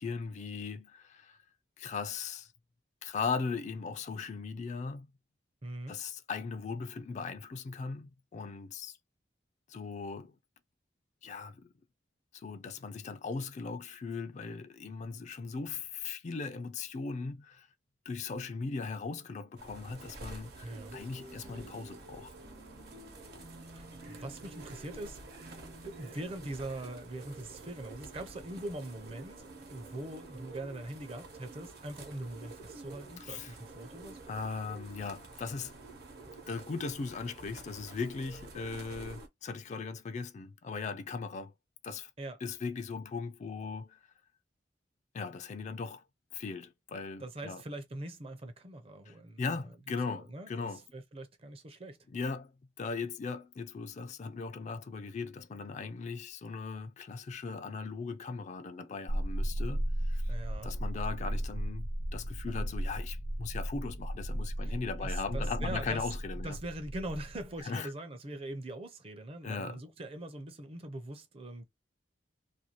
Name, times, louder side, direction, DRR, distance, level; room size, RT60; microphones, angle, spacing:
voice 1, 0.0-1.4 1.8-2.5 3.0-5.1 5.9-9.0 9.7-10.3 11.2-11.7 12.3-17.7 18.1-22.3 33.2-33.5 34.3-35.7 36.5-41.5 41.8-42.1 42.4-44.0 45.1-46.0 46.3-47.6 49.1-50.8 52.1-52.5 52.8-60.3 60.6-66.6 67.6-67.9 69.4-69.8, left 4 dB, 40° left, 0.3 m, -38 dB
voice 2, 5.6-6.0 20.6-21.0 23.7-25.2 25.8-29.4 29.7-34.2 42.2-42.4 47.2-49.4 50.1-52.0 60.3-60.7 64.6-64.7 65.0-66.0 66.4-71.6, right 1 dB, 35° right, 0.6 m, -42 dB
sound 1, 19.6-39.3, right 3 dB, 60° right, 0.9 m, -49 dB
sound 2, 20.7-26.3, equal, 90° right, 1.0 m, -53 dB
sound 3, 59.1-67.6, right 1 dB, 80° left, 0.8 m, -35 dB
2.6 x 2.3 x 2.9 m
head